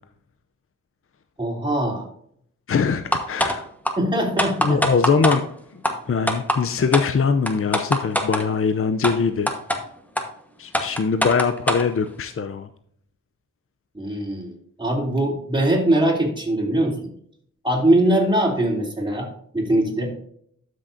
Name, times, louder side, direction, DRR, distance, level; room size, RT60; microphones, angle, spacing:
voice 1, 1.4-2.0 4.0-4.8 13.9-14.5 14.8-17.1 17.6-19.3 19.5-20.1, right 1 dB, 15° right, -2 dB, 3.1 m, -21 dB
voice 2, 2.7-3.7 4.6-5.4 5.7-9.5 10.6-12.7, left 5 dB, 45° left, 9 dB, 0.6 m, -22 dB
sound 1, 3.1-3.6 3.9-4.0 4.4-5.4 5.8-5.9 6.3-6.6 6.9-7.1 7.5-8.4 9.0-9.1 9.5-9.8 10.2-10.3 10.7-11.9, equal, 5° left, 1.2 m, -22 dB
12.5 x 6.3 x 2.6 m, 0.65 s
wide cardioid pair, 80°, 32 cm